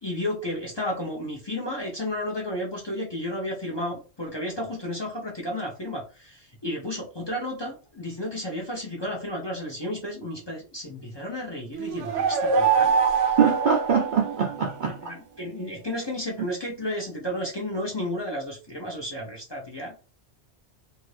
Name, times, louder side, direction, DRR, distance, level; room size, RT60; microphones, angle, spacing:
voice 1, 0.0-12.9 15.1-20.0, left 1 dB, 30° left, 0.6 m, -32 dB
sound 1, 11.8-14.7, right 6 dB, 80° right, 1.0 m, -24 dB
voice 2, 13.4-15.0, right 7 dB, 60° right, 0.5 m, -23 dB
2.7 x 2.6 x 3.2 m
omnidirectional pair, 1.2 m